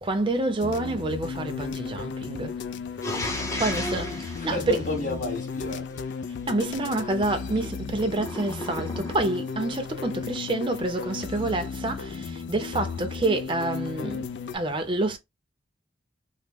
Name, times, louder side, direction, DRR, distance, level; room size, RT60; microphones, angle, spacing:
voice 1, 0.0-2.6 3.6-4.9 6.5-14.3 14.5-15.2, right 2 dB, 30° right, 0.6 m, -28 dB
sound 1, 0.6-14.6, left 5 dB, 65° left, 0.3 m, -35 dB
voice 2, 3.0-6.0, left 2 dB, 45° left, 1.3 m, -34 dB
sound 2, 3.0-5.7 8.1-9.6, left 1 dB, 20° left, 0.6 m, -34 dB
3.0 x 2.0 x 3.4 m
head